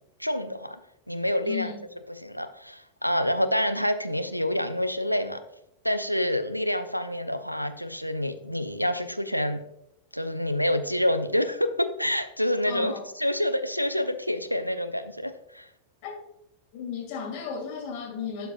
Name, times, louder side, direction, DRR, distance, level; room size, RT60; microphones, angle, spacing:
voice 1, 0.2-0.8 1.1-1.7 2.1-5.4 5.8-9.6 10.1-12.9 13.2-15.7, left 1 dB, 90° left, 9 dB, 0.4 m, -27 dB
voice 2, 1.4-1.8 12.7-13.1 16.0-16.1 16.7-18.5, left 6 dB, 45° left, 0 dB, 2.2 m, -34 dB
11.5 x 4.6 x 2.4 m, 0.80 s
figure-of-eight pair, 90°, 0 cm